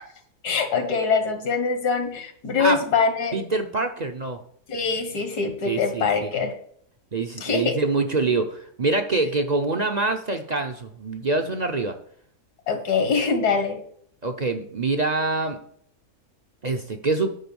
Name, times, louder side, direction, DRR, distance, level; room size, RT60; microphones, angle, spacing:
voice 1, 0.4-3.4 4.7-6.5 7.4-7.7 12.7-13.8, left 5 dB, 75° left, 6 dB, 2.0 m, -23 dB
voice 2, 3.3-4.4 5.6-6.3 7.1-11.9 14.2-15.6 16.6-17.3, right 3 dB, 40° right, 6 dB, 0.6 m, -25 dB
10.0 x 5.1 x 7.0 m, 0.64 s
omnidirectional pair, 1.7 m